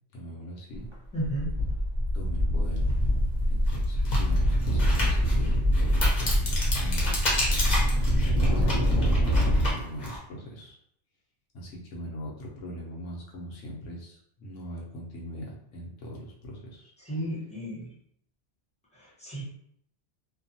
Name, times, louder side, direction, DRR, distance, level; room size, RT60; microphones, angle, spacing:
voice 1, 0.1-0.9 2.1-2.8 3.5-8.0 8.4-10.8 11.5-16.9, equal, 80° left, -3 dB, 1.0 m, -41 dB
sound 1, 0.8-0.9 1.2-9.7, equal, 25° right, 0.7 m, -25 dB
voice 2, 1.1-1.5 17.0-17.9 18.9-19.4, right 1 dB, 5° left, -7 dB, 0.8 m, -33 dB
sound 2, 2.9-3.0 3.6-10.2, left 1 dB, 40° left, 0.8 m, -31 dB
2.6 x 2.2 x 2.7 m, 0.70 s
omnidirectional pair, 1.2 m